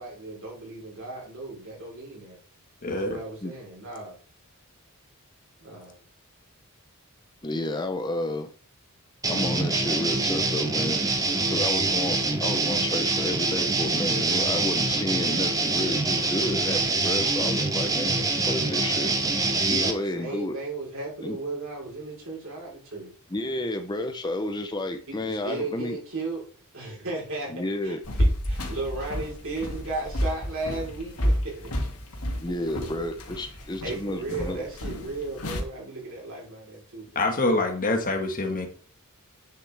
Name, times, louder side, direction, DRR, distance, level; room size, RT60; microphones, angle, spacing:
voice 1, 0.0-2.4 2.9-4.2 5.6-6.0 19.7-23.1 25.1-26.5 26.7-27.5 27.8-31.7 32.8-32.9 33.8-37.2, right 2 dB, 60° right, 4.1 m, -35 dB
voice 2, 2.8-3.2 37.1-38.7, left 2 dB, 40° left, 1.5 m, -25 dB
voice 3, 7.4-8.5 9.3-11.0 11.5-19.4 19.7-20.6 21.2-21.4 23.3-26.0 27.5-28.0 32.4-34.6, left 1 dB, 20° left, 0.7 m, -31 dB
sound 1, 9.2-19.9, right 3 dB, 15° right, 1.0 m, -25 dB
Steps walking up stairs, 28.0-35.6, equal, 80° left, 2.4 m, -30 dB
9.5 x 7.4 x 3.4 m
head